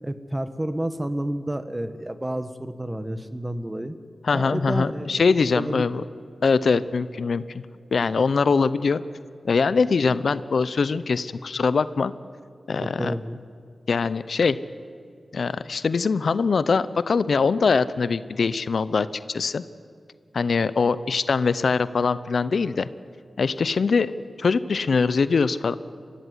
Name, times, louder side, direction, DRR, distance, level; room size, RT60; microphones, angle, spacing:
voice 1, 0.0-4.0 4.3-5.1 5.5-6.0 12.8-13.4, right 1 dB, 20° right, 10 dB, 1.4 m, -30 dB
voice 2, 4.2-6.0 6.4-7.4 7.9-9.0 9.4-12.1 12.7-13.1 13.9-14.6 15.3-19.6 20.3-22.9 23.4-25.8, left 4 dB, 75° left, 15 dB, 0.7 m, -22 dB
24.0 x 15.5 x 9.8 m, 2.3 s
cardioid pair, 55°, 0 cm